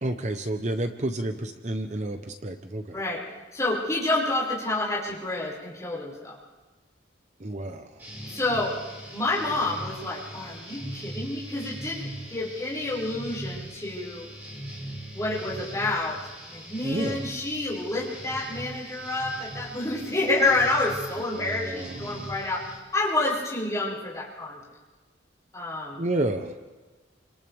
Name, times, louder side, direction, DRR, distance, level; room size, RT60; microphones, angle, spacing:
voice 1, 0.0-3.0 7.4-8.0 16.8-17.2 21.3-22.3 26.0-26.5, right 1 dB, 40° right, 6 dB, 0.9 m, -30 dB
voice 2, 3.5-6.4 8.2-8.7 9.1-14.3 15.1-16.2 16.5-22.6 22.9-24.6 25.5-26.0, left 2 dB, 15° left, -5 dB, 5.8 m, -28 dB
sound 1, 8.0-22.8, equal, 10° right, 5.3 m, -40 dB
29.5 x 26.5 x 3.5 m, 1.3 s
head